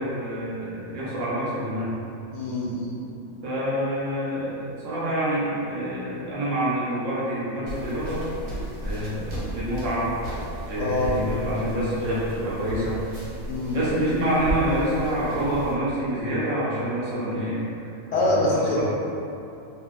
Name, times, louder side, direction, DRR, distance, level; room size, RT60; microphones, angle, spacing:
voice 1, 0.0-1.9 3.4-8.2 8.8-10.0 10.7-13.0 13.7-17.6 18.1-18.4 18.7-18.8, right 1 dB, 65° right, -8 dB, 1.1 m, -27 dB
voice 2, 2.3-3.0 10.8-11.1 13.5-13.8 18.1-18.8, left 2 dB, 70° left, -6 dB, 0.8 m, -24 dB
sound 1, 7.7-15.7, equal, 90° right, 1.2 m, -34 dB
3.6 x 2.1 x 2.3 m, 2.7 s
omnidirectional pair, 1.5 m